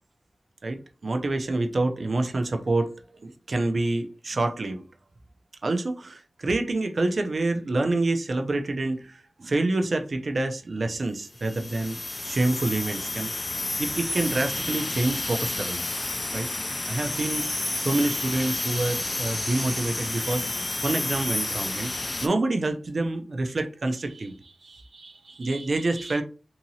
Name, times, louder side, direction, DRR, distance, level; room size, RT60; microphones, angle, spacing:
voice 1, 0.6-2.9 3.2-4.8 5.6-13.3 13.8-16.0 16.3-16.5 16.9-17.4 17.8-20.5 20.8-21.9 22.2-26.2, right 2 dB, 50° right, 0.4 m, -27 dB
sound 1, 11.4-22.3, left 2 dB, 30° left, 0.3 m, -30 dB
2.8 x 2.7 x 2.7 m
wide cardioid pair, 105°, 0 cm